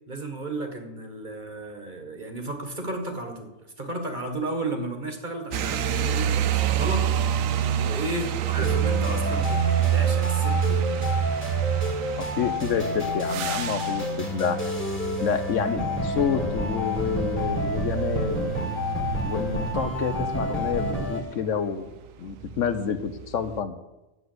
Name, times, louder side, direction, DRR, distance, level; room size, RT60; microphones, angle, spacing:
voice 1, 0.1-3.5 3.8-7.5 7.8-10.9, right 2 dB, 35° right, 4 dB, 1.8 m, -33 dB
sound 1, 5.5-21.5 22.3-23.6, right 10 dB, 85° right, 1.1 m, -28 dB
sound 2, 8.6-21.2, left 1 dB, 10° left, 2.0 m, -29 dB
voice 2, 12.2-14.6 15.2-18.5 19.2-21.9 22.2-23.8, left 7 dB, 70° left, 10 dB, 1.2 m, -29 dB
9.7 x 7.9 x 8.0 m, 0.99 s
omnidirectional pair, 1.3 m